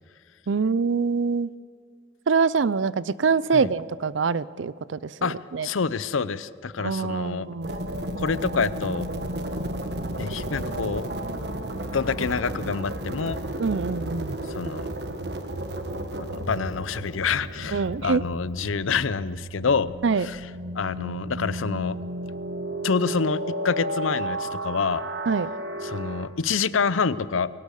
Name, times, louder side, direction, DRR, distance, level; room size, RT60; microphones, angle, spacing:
voice 1, 0.5-1.5 2.3-5.7 6.8-7.8 13.6-14.4 17.7-18.2 20.0-20.3 25.3-25.5, right 5 dB, 75° right, 19 dB, 0.5 m, -24 dB
voice 2, 5.6-7.5 8.2-9.1 10.2-11.0 11.9-13.4 14.5-14.9 16.2-22.0 22.8-25.1 25.8-27.5, left 5 dB, 90° left, 17 dB, 0.6 m, -27 dB
sound 1, 7.6-26.3, right 1 dB, 55° right, 1.4 m, -33 dB
22.0 x 18.5 x 6.6 m, 2.4 s
head